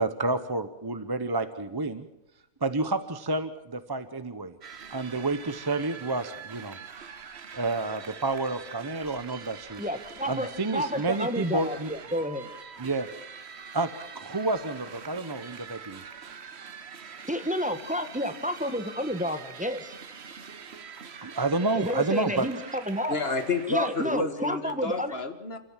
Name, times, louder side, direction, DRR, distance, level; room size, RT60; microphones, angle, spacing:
voice 1, 0.0-2.1 2.6-4.6 4.9-6.8 7.5-9.8 10.3-11.9 12.8-13.1 13.7-13.9 14.1-16.0 21.2-22.5, right 2 dB, 20° right, 10 dB, 0.6 m, -29 dB
sound 1, 4.6-24.2, right 6 dB, 50° right, 1.2 m, -44 dB
voice 2, 9.8-12.5 17.3-19.9 21.7-22.6 22.9-23.1 23.7-25.1, equal, 5° right, 8 dB, 1.2 m, -30 dB
voice 3, 23.1-25.6, left 3 dB, 45° left, 8 dB, 1.8 m, -29 dB
30.0 x 13.5 x 7.3 m, 0.87 s
omnidirectional pair, 1.6 m